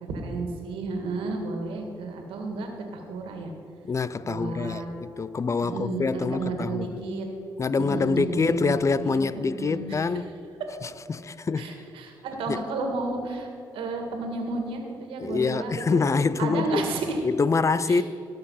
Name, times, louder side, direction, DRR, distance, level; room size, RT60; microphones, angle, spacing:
voice 1, 0.0-3.5 4.2-4.9 5.6-7.3 7.8-10.0 10.6-10.7 11.6-13.5 13.7-16.0 16.4-17.2 17.9-18.0, right 3 dB, 85° right, 1.9 m, -32 dB
voice 2, 3.8-7.0 7.6-10.3 10.8-11.7 12.5-12.6 15.2-16.9 17.2-18.0, left 4 dB, 35° left, 0.5 m, -26 dB
17.0 x 6.6 x 5.7 m
cardioid pair, 65°, 9 cm